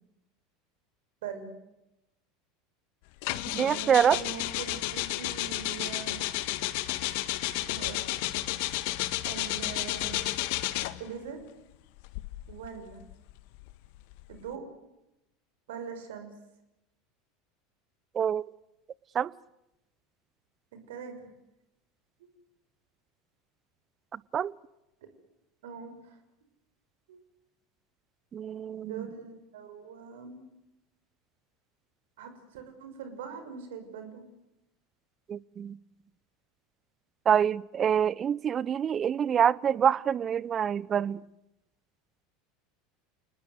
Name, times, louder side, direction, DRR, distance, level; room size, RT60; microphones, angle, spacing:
voice 1, 1.2-1.5 3.5-6.2 7.6-8.4 9.2-10.2 11.0-11.4 12.5-13.0 14.3-14.6 15.7-16.3 20.9-21.3 22.2-22.3 25.6-26.2 27.1-27.2 28.8-30.4 32.2-34.3, right 6 dB, 70° right, 6.1 m, -42 dB
sound 1, 3.2-11.1 12.0-14.5, left 17 dB, 60° left, 1.7 m, -32 dB
voice 2, 3.5-4.2 18.1-18.4 19.1-19.3 24.1-24.5 28.3-29.1 35.3-35.8 37.3-41.2, right 8 dB, 35° right, 0.8 m, -26 dB
29.0 x 20.0 x 8.1 m
figure-of-eight pair, 75°, 0 cm